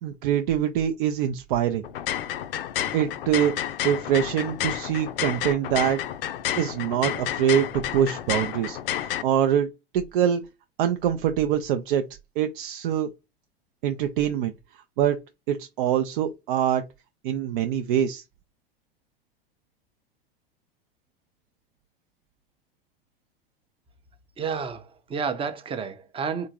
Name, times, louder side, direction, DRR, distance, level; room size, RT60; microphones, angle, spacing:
voice 1, 0.0-1.8 2.9-6.0 6.5-9.7 9.9-10.4 10.8-12.0 12.4-13.1 13.8-14.5 15.0-15.2 15.5-16.8 17.2-18.2, right 9 dB, 60° right, 0.5 m, -24 dB
sound 1, 1.8-9.2, left 11 dB, 70° left, 0.5 m, -30 dB
voice 2, 24.4-26.5, right 6 dB, 20° right, 0.6 m, -30 dB
3.6 x 2.5 x 2.8 m
hypercardioid pair, 90°, 29 cm